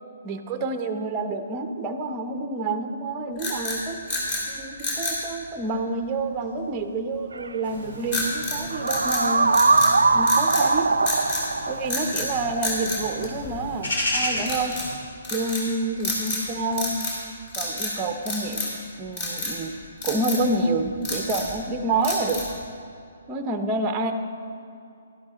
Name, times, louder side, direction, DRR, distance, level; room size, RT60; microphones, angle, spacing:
voice 1, 0.2-4.0 4.5-9.5 10.1-10.9 11.7-14.7 15.3-17.1 17.6-18.7 19.0-19.7 20.0-22.4 23.3-24.1, right 2 dB, 20° right, 7 dB, 0.6 m, -28 dB
sound 1, 3.4-4.5 4.8-5.2 8.1-8.6 8.9-9.9 10.2-10.7 11.1-11.5 11.9-12.3 12.6-13.8 14.4-14.9 15.2-15.7 16.0-16.5 16.7-17.2 17.5-17.9 18.3-18.8 19.2-19.6 20.0-20.4 20.9-21.5 22.0-22.6, left 2 dB, 35° left, 3.3 m, -29 dB
sound 2, 7.3-7.5 8.7-13.3, right 3 dB, 70° right, 0.4 m, -22 dB
sound 3, 7.6-15.0, left 1 dB, 55° left, 2.9 m, -34 dB
12.0 x 11.5 x 3.9 m, 2.5 s
figure-of-eight pair, 130°, 0 cm